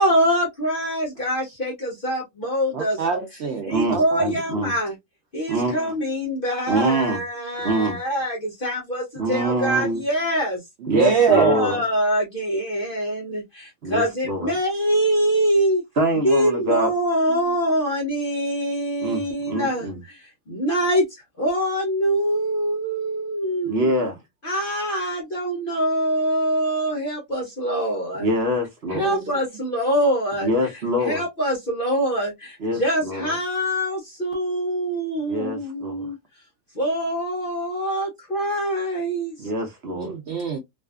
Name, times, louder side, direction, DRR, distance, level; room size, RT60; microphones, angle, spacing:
voice 1, 0.0-3.0 3.6-4.9 5.3-10.6 11.3-15.8 16.2-20.2 20.5-21.1 21.4-23.9 24.4-28.3 28.9-30.5 31.0-36.2 36.7-39.4, equal, 50° left, 0.6 m, -24 dB
voice 2, 2.7-4.3 10.8-11.6 28.9-29.2 39.9-40.6, right 6 dB, 85° right, 0.6 m, -23 dB
voice 3, 3.7-4.7 5.5-6.0 6.7-7.2 7.6-8.0 9.2-10.0 10.9-11.8 13.8-14.5 16.0-16.9 19.0-20.0 23.6-24.2 28.2-29.1 30.4-31.2 32.6-33.3 35.3-36.1 39.4-40.1, right 1 dB, 50° right, 0.8 m, -24 dB
2.6 x 2.4 x 2.2 m
omnidirectional pair, 1.7 m